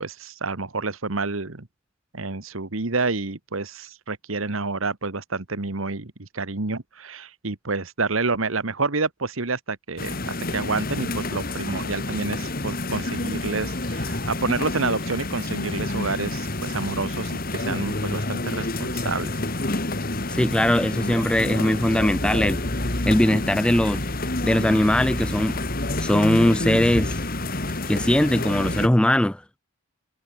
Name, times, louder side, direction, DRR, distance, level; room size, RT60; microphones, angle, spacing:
voice 1, 0.0-1.7 2.1-19.3, right 3 dB, 75° right, 1.6 m, -28 dB
sound 1, 10.0-28.9, left 2 dB, 45° left, 2.7 m, -28 dB
voice 2, 20.3-22.6 23.0-24.1 24.4-25.6 26.0-27.2 27.9-29.4, left 1 dB, 5° left, 0.4 m, -20 dB
sound 2, 22.8-26.3 27.1-27.3 27.7-27.9, right 1 dB, 25° right, 3.1 m, -48 dB
head